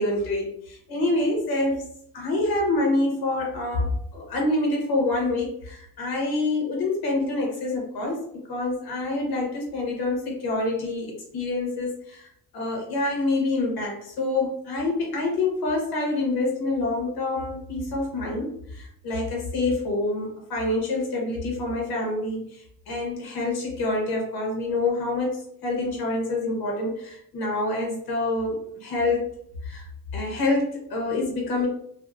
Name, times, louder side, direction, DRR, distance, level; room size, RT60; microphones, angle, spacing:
voice 1, 0.0-1.8 2.1-12.3 12.5-29.3 29.6-29.9 30.1-31.7, left 2 dB, 80° left, 0 dB, 1.1 m, -26 dB
3.5 x 2.3 x 2.4 m, 0.68 s
cardioid pair, 120°, 37 cm